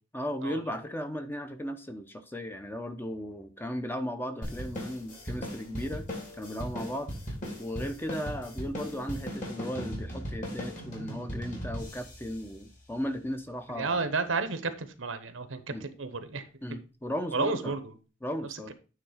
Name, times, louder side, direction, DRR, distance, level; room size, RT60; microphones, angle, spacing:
voice 1, 0.1-6.1 6.4-14.0 15.7-15.8 16.6-17.8 18.2-18.7, equal, 10° left, 8 dB, 0.7 m, -36 dB
sound 1, 4.4-13.2, equal, 45° left, 3.0 m, -38 dB
voice 2, 13.7-16.5 17.3-17.9 18.5-18.7, right 4 dB, 85° right, 10 dB, 1.0 m, -32 dB
9.2 x 3.6 x 4.9 m, 0.34 s
head